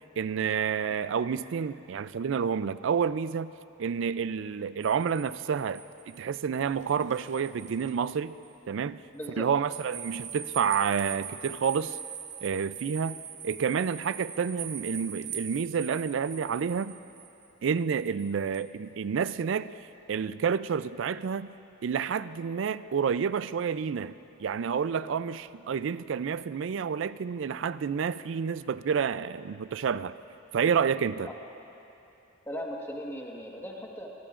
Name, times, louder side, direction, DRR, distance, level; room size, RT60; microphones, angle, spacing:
voice 1, 0.2-3.5 3.8-5.8 6.1-8.3 8.7-9.0 9.4-12.0 12.4-17.0 17.6-19.7 20.1-21.5 21.8-24.1 24.4-30.1 30.5-31.3, right 6 dB, 65° right, 15 dB, 0.4 m, -29 dB
sound 1, 4.8-8.0 8.4-8.5 9.7-18.7, right 8 dB, 35° right, 0.7 m, -42 dB
voice 2, 9.1-9.5 31.2-31.4 32.5-34.1, equal, 10° left, -1 dB, 1.4 m, -38 dB
23.0 x 22.5 x 2.5 m, 2.8 s
head